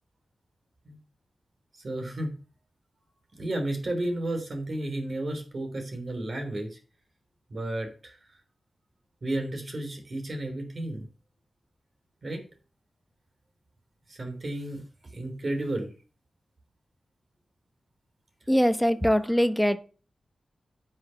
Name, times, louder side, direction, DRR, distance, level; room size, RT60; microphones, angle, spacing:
voice 1, 1.8-2.3 3.4-6.8 7.5-8.2 9.2-11.0 12.2-12.4 14.1-14.8 15.1-15.9, right 1 dB, 50° right, 5 dB, 3.3 m, -32 dB
voice 2, 18.5-19.8, equal, ahead, 12 dB, 0.9 m, -22 dB
9.6 x 6.1 x 5.7 m, 0.36 s
wide cardioid pair, 85°, 0 cm